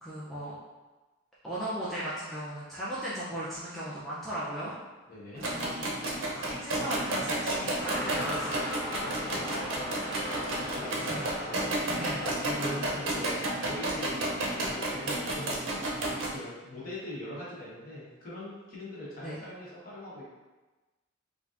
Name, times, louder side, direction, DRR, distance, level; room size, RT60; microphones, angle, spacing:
voice 1, 0.0-0.5 1.4-4.7 5.4-5.9 6.4-8.7 10.9-11.2 11.9-12.2 19.2-19.4, right 1 dB, ahead, -10 dB, 0.4 m, -37 dB
voice 2, 5.1-5.5 9.2-9.9 10.5-15.8 16.3-20.3, left 1 dB, 45° left, -8 dB, 1.0 m, -42 dB
sound 1, 5.4-16.3, right 1 dB, 65° right, 0.6 m, -32 dB
sound 2, 7.8-14.2 14.9-15.0, equal, 25° left, 0.9 m, -38 dB
3.4 x 2.5 x 2.5 m, 1.2 s
head